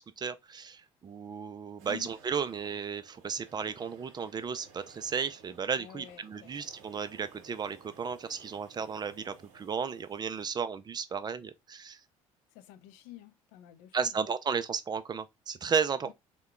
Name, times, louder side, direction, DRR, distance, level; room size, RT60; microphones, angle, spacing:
voice 1, 0.2-12.0 13.9-16.1, right 6 dB, 25° right, 0.4 m, -34 dB
sound 1, 1.8-10.5, right 5 dB, 60° right, 1.0 m, -57 dB
voice 2, 5.8-6.7 12.5-14.2 16.0-16.1, left 14 dB, 60° left, 0.6 m, -49 dB
3.7 x 2.2 x 3.5 m
figure-of-eight pair, 60°, 16 cm